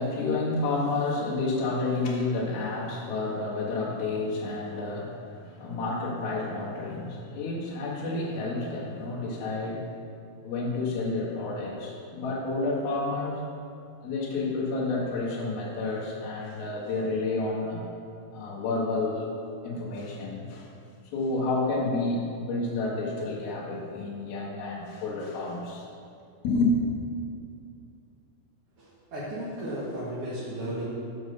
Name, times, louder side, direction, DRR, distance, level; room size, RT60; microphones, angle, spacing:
voice 1, 0.0-10.0 10.4-13.4 14.0-17.8 18.3-19.3 19.6-20.7 21.1-25.9 26.4-26.7, left 3 dB, 75° left, -5 dB, 3.5 m, -30 dB
voice 2, 28.8-30.8, right 1 dB, 50° right, -9 dB, 2.0 m, -34 dB
8.1 x 7.2 x 6.7 m, 2.5 s
omnidirectional pair, 4.4 m